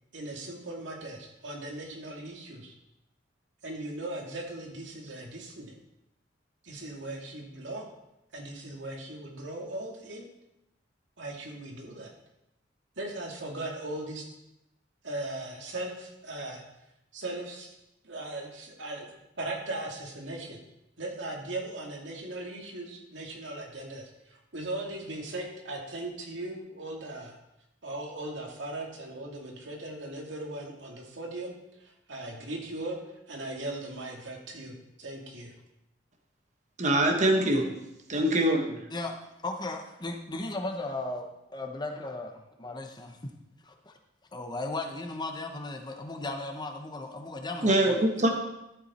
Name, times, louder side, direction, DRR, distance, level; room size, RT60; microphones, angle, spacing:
voice 1, 0.1-2.7 3.6-5.7 6.6-7.9 8.3-10.3 11.2-12.1 13.0-14.2 15.0-16.6 17.1-17.7 18.0-20.6 21.0-27.4 27.8-35.5, right 2 dB, 75° right, 0 dB, 2.3 m, -38 dB
voice 2, 36.8-37.7 38.1-38.8 47.6-48.3, right 1 dB, 40° right, 3 dB, 1.3 m, -23 dB
voice 3, 39.4-43.3 43.6-43.9 44.3-48.0, left 2 dB, 25° left, 4 dB, 0.9 m, -36 dB
12.5 x 7.2 x 4.3 m, 0.88 s
head